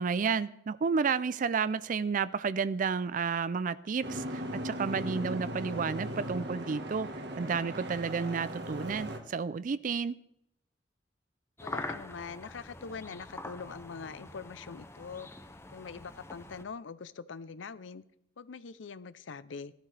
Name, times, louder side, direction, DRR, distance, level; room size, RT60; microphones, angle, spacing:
voice 1, 0.0-7.1 7.4-10.2, right 5 dB, 45° right, 16 dB, 0.4 m, -31 dB
Boat Water vehicle, 4.0-9.2, equal, 60° right, 1.5 m, -38 dB
voice 2, 11.6-15.3 15.7-18.0 18.4-19.7, left 5 dB, 80° left, 16 dB, 0.6 m, -43 dB
sound 1, 11.6-16.6, left 2 dB, 15° left, 0.7 m, -44 dB
16.5 x 12.0 x 3.4 m, 0.79 s
head